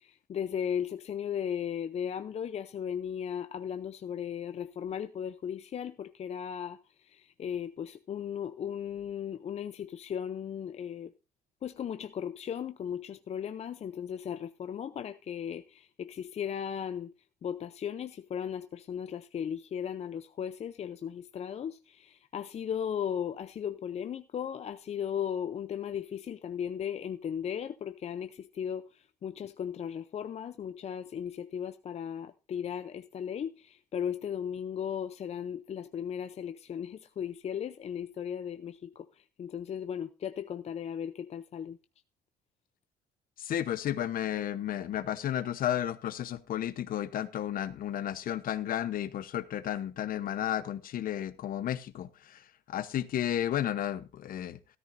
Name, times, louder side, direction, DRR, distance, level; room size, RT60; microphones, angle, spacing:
voice 1, 0.0-11.1 11.6-17.1 17.4-41.8, left 8 dB, 40° left, 0.6 m, -36 dB
voice 2, 43.4-54.6, left 11 dB, 55° left, 0.9 m, -33 dB
13.5 x 13.0 x 2.6 m
cardioid pair, 110°, 17 cm